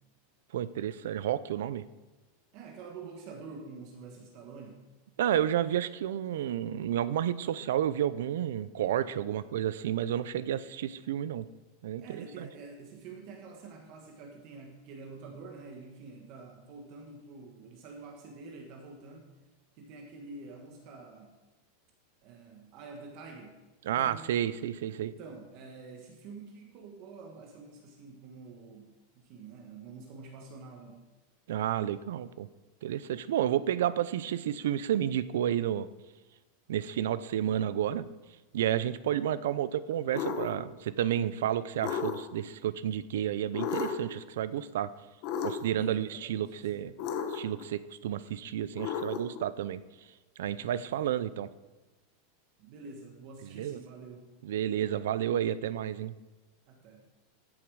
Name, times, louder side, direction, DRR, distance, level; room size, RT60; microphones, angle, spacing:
voice 1, 0.5-1.8 5.2-11.5 11.8-12.5 23.9-25.1 31.5-32.5 32.8-35.9 36.7-38.0 38.5-44.9 45.4-46.9 47.3-49.8 50.4-51.5 53.4-53.8 54.4-56.1, right 10 dB, 75° right, 16 dB, 0.5 m, -31 dB
voice 2, 2.5-4.8 9.3-9.5 12.0-19.3 19.7-21.3 22.2-23.6 24.0-24.3 25.1-28.9 29.1-31.0 45.7-46.9 50.5-51.0 52.6-54.3 56.7-57.0, right 4 dB, 35° right, 2 dB, 1.3 m, -47 dB
sound 1, 40.1-40.5 41.8-42.5 43.5-44.2 45.2-45.8 47.0-47.7 48.8-49.4, left 7 dB, 35° left, 1.0 m, -34 dB
13.5 x 7.2 x 4.8 m, 1.1 s
supercardioid pair, 175°, 0 cm